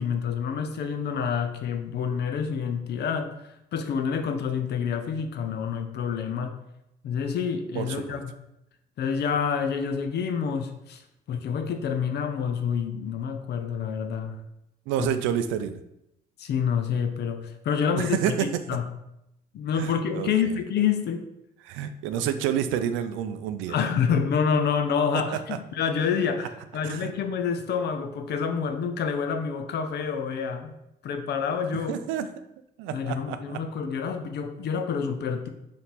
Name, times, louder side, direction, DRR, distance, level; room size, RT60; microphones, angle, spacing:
voice 1, 0.0-3.3 3.7-6.5 7.0-8.3 9.0-11.0 11.3-14.4 15.0-15.1 16.4-18.4 18.7-18.9 19.5-21.2 23.7-30.8 31.0-32.0 32.9-35.5, left 6 dB, 60° left, 7 dB, 0.6 m, -28 dB
voice 2, 7.7-8.2 14.9-15.8 18.0-18.5 19.8-20.5 21.6-23.8 25.1-25.6 26.8-27.1 31.7-32.2 32.8-33.6, right 10 dB, 80° right, 10 dB, 0.4 m, -29 dB
4.4 x 2.7 x 4.0 m, 0.83 s
supercardioid pair, 70°, 20 cm